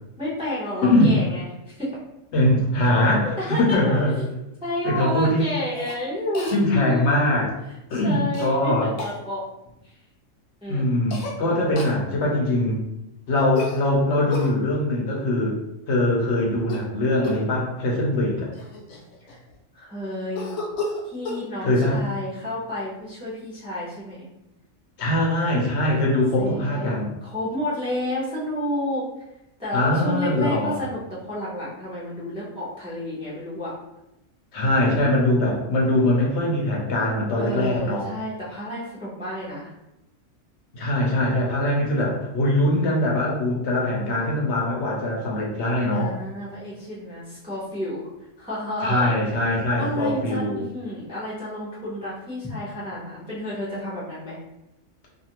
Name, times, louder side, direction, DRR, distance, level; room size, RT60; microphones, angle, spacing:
voice 1, 0.2-1.9 3.1-4.3 4.6-7.4 8.0-9.4 9.8-9.9 10.6-10.9 11.7-11.9 19.3-19.4 19.7-20.5 21.0-24.3 26.4-26.9 27.2-29.0 29.6-33.7 37.4-39.7 45.9-48.0 48.4-49.1 49.5-54.4, left 1 dB, 5° right, -9 dB, 0.5 m, -30 dB
voice 2, 0.8-1.2 2.3-4.1 4.8-5.5 6.5-7.5 7.9-8.9 10.7-12.8 13.3-15.6 15.9-18.5 21.6-22.0 25.0-27.1 29.7-30.8 34.5-38.1 40.7-46.1 48.8-50.6, left 1 dB, 65° left, -2 dB, 0.9 m, -22 dB
Cough, 5.7-6.0 6.3-6.6 8.3-8.5 9.0-9.2 11.1-11.4 11.8-12.0 13.5-14.5 16.6-16.9 17.2-17.5 18.2-18.3 18.5-19.6 20.4-21.4, left 2 dB, 85° left, 1.0 m, -32 dB
2.5 x 2.5 x 2.8 m, 0.90 s
omnidirectional pair, 1.4 m